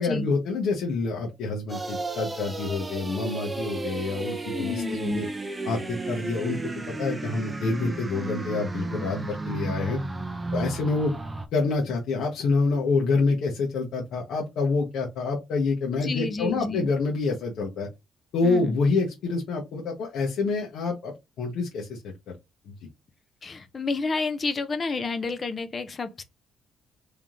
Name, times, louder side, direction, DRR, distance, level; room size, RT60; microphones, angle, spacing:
voice 1, 0.0-5.2 5.6-6.6 7.0-10.0 10.5-11.1 11.5-17.9 18.3-22.1 22.6-22.7, left 3 dB, 65° left, 1.1 m, -27 dB
sound 1, 1.7-11.5, right 2 dB, 15° right, 0.6 m, -33 dB
voice 2, 4.5-5.2 15.9-16.9 18.4-18.7 23.4-26.2, left 4 dB, 25° left, 0.6 m, -30 dB
3.7 x 3.6 x 3.0 m
cardioid pair, 160°, 0 cm